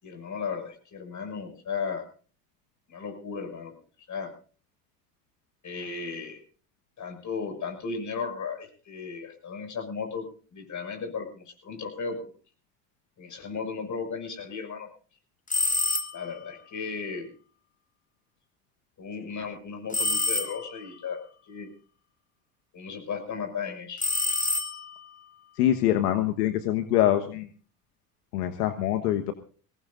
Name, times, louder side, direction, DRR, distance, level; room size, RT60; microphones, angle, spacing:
voice 1, 0.0-2.0 2.9-3.7 4.1-4.3 5.6-6.4 7.0-10.3 10.5-12.3 13.2-14.9 16.1-17.3 19.0-21.2 21.5-21.7 22.7-24.0, left 5 dB, 40° left, 5 dB, 6.3 m, -35 dB
sound 1, 15.5-16.4 19.9-20.9 24.0-25.1, left 2 dB, 15° left, 2.2 m, -28 dB
voice 2, 25.6-27.5 28.3-29.3, left 12 dB, 80° left, 7 dB, 1.4 m, -24 dB
22.5 x 18.0 x 2.6 m, 0.40 s
hypercardioid pair, 70°, 47 cm